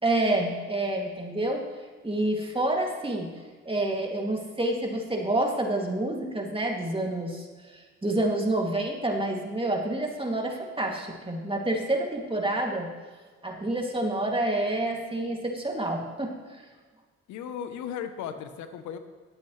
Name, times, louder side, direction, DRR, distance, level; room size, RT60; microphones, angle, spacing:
voice 1, 0.0-1.6 2.0-3.3 3.7-7.5 7.7-12.9 13.4-16.3, right 1 dB, 20° right, 0 dB, 2.6 m, -28 dB
voice 2, 17.3-19.0, left 8 dB, 85° left, 9 dB, 0.9 m, -36 dB
18.5 x 8.3 x 3.3 m, 1.4 s
supercardioid pair, 50°, 29 cm